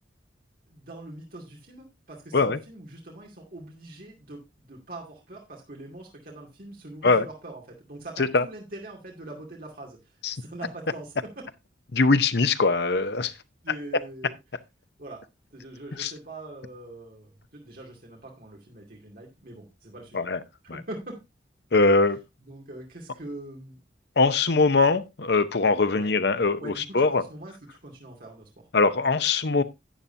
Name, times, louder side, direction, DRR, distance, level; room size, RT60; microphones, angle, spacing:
voice 1, 0.7-4.4 4.7-11.5 13.3-13.4 13.6-14.4 15.0-15.2 15.5-20.3 20.6-21.2 22.4-23.8 25.9-26.1 26.6-28.6, right 2 dB, 55° right, 2.4 m, -43 dB
voice 2, 11.9-13.3 16.0-16.1 20.1-20.4 20.7-20.8 21.7-22.2 24.2-27.2 28.7-29.6, left 3 dB, 65° left, 0.8 m, -22 dB
11.5 x 8.9 x 2.7 m
head